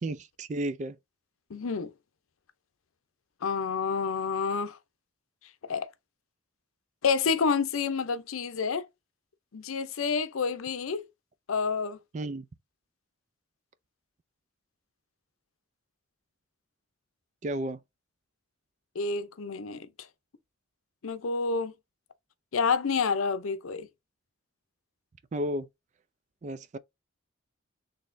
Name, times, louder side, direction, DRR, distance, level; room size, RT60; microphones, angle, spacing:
voice 1, 0.0-1.0 12.1-12.5 17.4-17.8 25.3-25.7 26.4-26.8, right 1 dB, 35° right, 0.3 m, -32 dB
voice 2, 1.5-1.9 3.4-4.8 5.6-5.9 7.0-8.9 9.5-11.1 11.5-12.0 18.9-19.9 21.0-21.7 22.5-23.9, left 5 dB, 90° left, 0.6 m, -28 dB
4.0 x 3.3 x 2.6 m
head